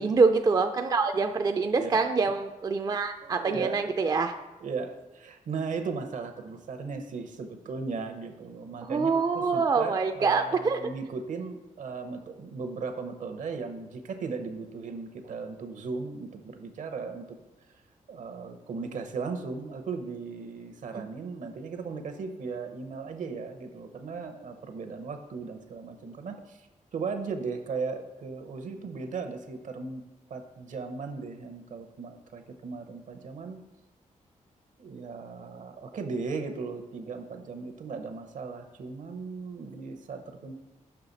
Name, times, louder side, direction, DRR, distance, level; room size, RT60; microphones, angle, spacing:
voice 1, 0.0-4.3 8.8-10.8 20.9-21.1, right 4 dB, 30° right, 6 dB, 0.4 m, -25 dB
voice 2, 1.8-2.3 3.2-3.9 4.6-17.4 18.1-30.0 30.3-33.6 34.8-40.5, right 4 dB, 70° right, 6 dB, 0.8 m, -37 dB
5.7 x 5.6 x 4.0 m, 1.1 s
cardioid pair, 95°, 14 cm